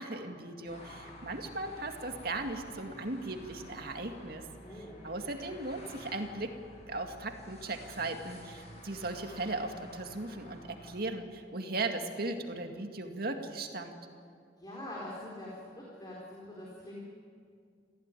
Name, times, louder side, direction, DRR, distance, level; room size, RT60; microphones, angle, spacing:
voice 1, 0.0-4.4 5.0-6.5 6.9-14.0, right 2 dB, 60° right, 4 dB, 2.1 m, -37 dB
sound 1, 0.6-11.0, left 1 dB, 40° left, 7.2 m, -51 dB
voice 2, 4.6-5.1 14.6-17.0, left 1 dB, 25° left, -4 dB, 4.2 m, -44 dB
26.5 x 15.5 x 9.2 m, 2.3 s
head